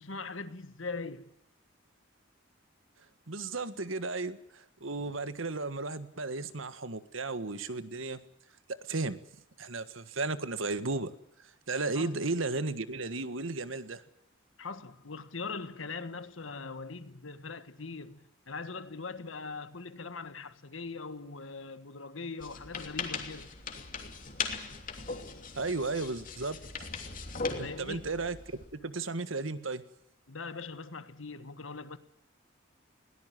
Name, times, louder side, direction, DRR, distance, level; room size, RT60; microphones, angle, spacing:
voice 1, 0.0-1.3 11.9-12.1 14.6-23.5 27.5-28.1 30.3-32.0, left 4 dB, 90° left, 1.5 m, -41 dB
voice 2, 3.3-8.2 8.7-9.2 9.6-11.1 11.4-14.0 25.5-26.6 27.6-29.8, right 3 dB, 90° right, 1.6 m, -34 dB
sound 1, 22.4-28.7, left 4 dB, 45° left, 2.9 m, -39 dB
21.5 x 18.0 x 9.3 m
head